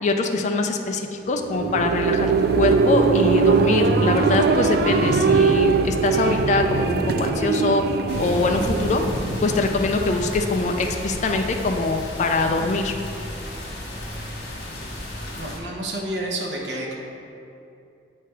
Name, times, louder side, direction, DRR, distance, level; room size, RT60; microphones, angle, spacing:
voice 1, 0.0-7.8 8.2-9.0 9.4-12.9, left 3 dB, 40° left, 4 dB, 0.3 m, -23 dB
sound 1, 1.3-9.9, right 4 dB, 60° right, 0.3 m, -21 dB
sound 2, 8.1-15.6, left 1 dB, 80° left, 1.5 m, -32 dB
voice 2, 15.4-17.0, right 1 dB, 85° right, -1 dB, 0.9 m, -29 dB
7.9 x 3.3 x 4.4 m, 2.7 s
head